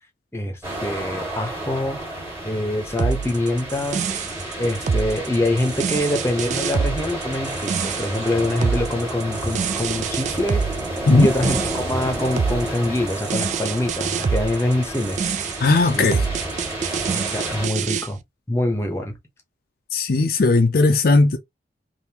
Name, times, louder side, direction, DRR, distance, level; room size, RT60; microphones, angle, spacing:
voice 1, 0.3-2.0 2.4-4.0 4.6-10.6 11.2-15.2 15.9-16.1 17.1-18.2 18.5-19.1, left 1 dB, 15° left, 0.9 m, -24 dB
sound 1, 0.6-17.7, right 1 dB, 10° right, 1.7 m, -31 dB
sound 2, 3.0-18.1, right 6 dB, 40° right, 0.3 m, -26 dB
voice 2, 15.6-16.3 19.9-21.4, left 3 dB, 50° left, 0.5 m, -17 dB
3.5 x 2.6 x 2.8 m
head